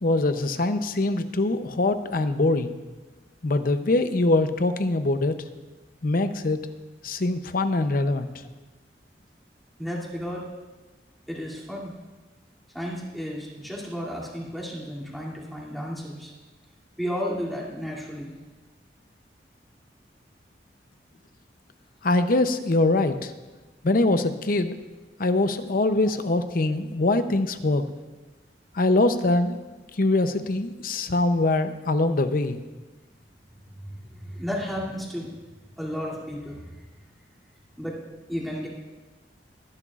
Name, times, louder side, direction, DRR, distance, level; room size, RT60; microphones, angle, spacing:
voice 1, 0.0-2.8 3.4-5.4 6.0-6.6 7.0-8.3 22.0-23.3 23.8-24.8 25.2-27.9 28.7-29.6 30.0-32.6, left 2 dB, 55° left, 9 dB, 0.7 m, -23 dB
voice 2, 9.8-10.5 11.3-11.9 12.7-16.3 17.0-18.3 26.1-26.2 33.8-35.3 35.8-36.9 37.8-38.0 38.3-38.7, equal, ahead, -5 dB, 2.7 m, -33 dB
21.5 x 11.0 x 2.5 m, 1.2 s
head